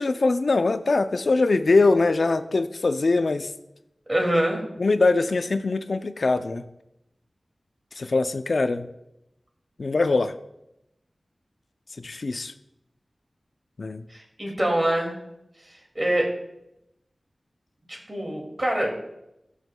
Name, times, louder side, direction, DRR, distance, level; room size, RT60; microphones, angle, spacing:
voice 1, 0.0-3.5 4.8-6.7 8.0-8.9 9.8-10.3 12.0-12.5 13.8-14.0, left 3 dB, 70° left, 10 dB, 0.4 m, -22 dB
voice 2, 4.1-4.7 14.1-15.2 15.9-16.3 17.9-18.9, right 1 dB, 30° right, 0 dB, 2.2 m, -24 dB
15.5 x 6.3 x 2.2 m, 0.86 s
wide cardioid pair, 75°, 0 cm